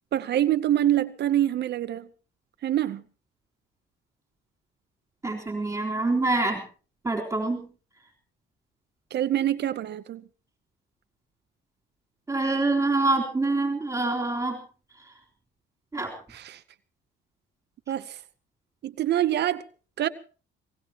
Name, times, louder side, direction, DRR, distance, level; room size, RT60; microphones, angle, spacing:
voice 1, 0.1-2.1 2.6-3.0 9.1-10.2 16.3-16.6 17.9-18.2 18.8-19.6 20.0-20.1, right 12 dB, 55° right, 0.8 m, -25 dB
voice 2, 5.2-6.6 7.0-7.7 12.3-14.6 15.9-16.1, right 2 dB, 15° right, 3.9 m, -25 dB
22.5 x 18.5 x 3.0 m
cardioid pair, 105°, 21 cm